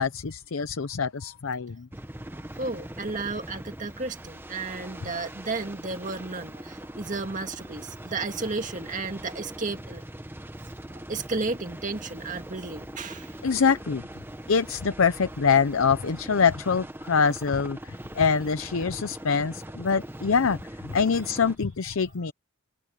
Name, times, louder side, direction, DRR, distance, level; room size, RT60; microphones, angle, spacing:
voice 1, 0.0-1.9 13.4-14.0 14.5-17.8 18.2-20.6 20.8-22.3, left 5 dB, 80° left, 0.7 m, -24 dB
sound 1, 1.9-21.6, right 1 dB, 10° right, 1.3 m, -41 dB
voice 2, 2.6-10.0 11.1-13.3, right 3 dB, 40° right, 2.1 m, -33 dB
head